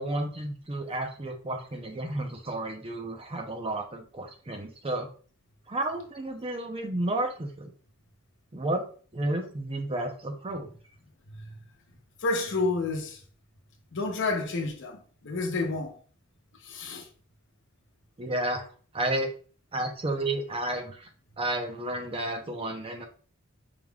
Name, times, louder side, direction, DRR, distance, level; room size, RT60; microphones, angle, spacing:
voice 1, 0.0-5.1 5.7-7.7 8.5-8.8 9.1-10.7 18.2-18.7 18.9-19.3 19.7-21.1 21.4-23.1, right 1 dB, 25° right, 0.7 m, -31 dB
voice 2, 12.2-13.2 13.9-16.0 16.6-17.1, left 3 dB, 60° left, 0.8 m, -30 dB
4.9 x 3.6 x 2.3 m
head